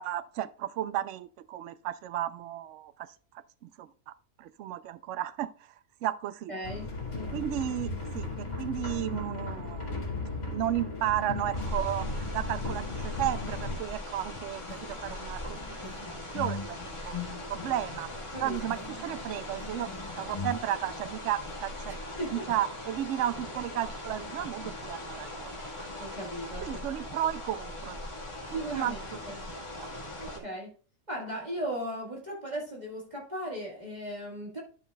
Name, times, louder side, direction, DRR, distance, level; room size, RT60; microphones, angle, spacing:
voice 1, 0.0-2.9 3.6-3.9 4.4-5.5 6.0-6.5 7.3-10.0 10.5-17.2 17.5-18.1 18.4-19.9 20.2-25.5 26.6-28.0 28.7-28.9 29.5-29.9 30.4-30.5, right 12 dB, 70° right, 0.8 m, -33 dB
voice 2, 6.5-7.0 18.3-18.6 22.2-22.4 26.0-26.9 28.5-29.4 30.2-30.7 31.1-34.6, equal, 30° right, 1.7 m, -37 dB
sound 1, 6.6-13.8, left 2 dB, 70° left, 2.4 m, -36 dB
sound 2, 11.5-30.4, left 1 dB, 20° left, 1.5 m, -40 dB
sound 3, 14.2-20.5, left 4 dB, 40° left, 0.6 m, -42 dB
12.0 x 5.8 x 2.2 m
omnidirectional pair, 1.5 m